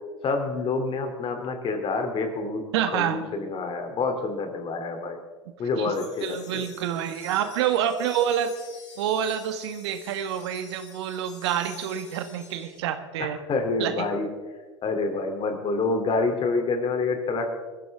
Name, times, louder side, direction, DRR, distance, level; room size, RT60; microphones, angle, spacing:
voice 1, 0.2-2.6 2.9-5.2 5.6-6.6 13.2-14.3 14.8-17.5, left 3 dB, 35° left, 5 dB, 3.1 m, -27 dB
voice 2, 2.7-3.2 5.8-5.9 6.2-8.5 9.0-13.4 13.8-14.1, right 9 dB, 70° right, 9 dB, 1.5 m, -27 dB
sound 1, 5.9-12.8, left 4 dB, 80° left, 6.5 m, -48 dB
22.0 x 14.5 x 3.6 m, 1.3 s
hypercardioid pair, 85°, 15 cm